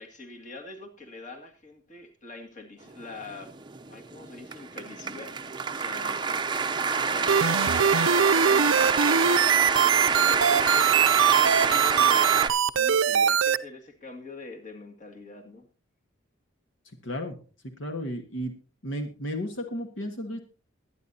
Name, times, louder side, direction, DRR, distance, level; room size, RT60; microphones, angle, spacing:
voice 1, 0.0-3.5 3.9-6.4 6.8-8.9 10.0-12.4 12.7-15.6, left 3 dB, 35° left, 2 dB, 2.1 m, -44 dB
sound 1, 3.2-12.5, right 5 dB, 20° right, 0.6 m, -26 dB
sound 2, 7.3-13.6, right 8 dB, 75° right, 0.5 m, -22 dB
voice 2, 17.0-17.4 17.8-18.5 18.8-20.4, equal, 70° left, 5 dB, 1.5 m, -33 dB
22.0 x 9.4 x 2.7 m, 0.35 s
head